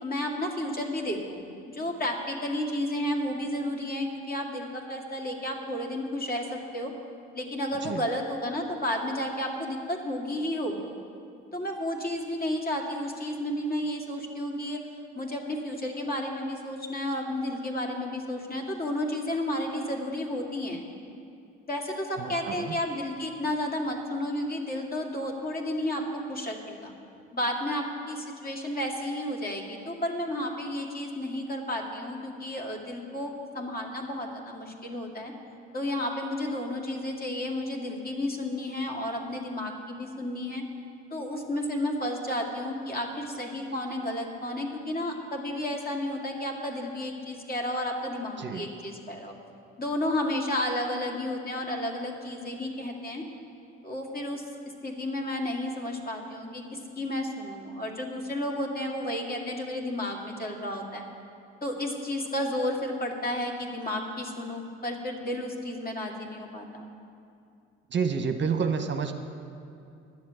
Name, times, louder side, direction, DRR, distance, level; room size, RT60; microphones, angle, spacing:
voice 1, 0.0-6.9 7.3-10.8 11.5-14.8 15.1-20.8 21.7-26.9 27.3-35.3 35.7-40.6 41.1-49.3 49.8-53.2 53.8-54.4 54.8-61.1 61.6-66.8, left 1 dB, 30° left, 1 dB, 2.3 m, -32 dB
voice 2, 22.2-22.7 48.4-48.6 67.9-69.1, right 6 dB, 40° right, 6 dB, 0.9 m, -29 dB
10.5 x 7.5 x 9.3 m, 2.6 s
hypercardioid pair, 55°, 29 cm